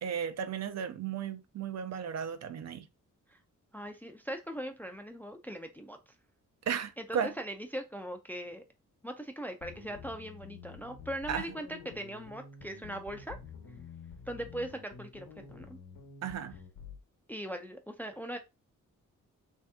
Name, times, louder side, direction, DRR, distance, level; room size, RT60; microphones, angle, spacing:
voice 1, 0.0-2.8 6.7-7.3 11.3-11.4 16.2-16.5, right 8 dB, 55° right, 0.4 m, -34 dB
voice 2, 3.7-6.0 7.0-8.6 9.0-13.4 14.3-15.8 17.3-18.4, right 1 dB, 5° left, 0.3 m, -40 dB
sound 1, 9.6-17.0, left 6 dB, 75° left, 0.9 m, -49 dB
3.3 x 2.7 x 3.4 m
wide cardioid pair, 150°, 31 cm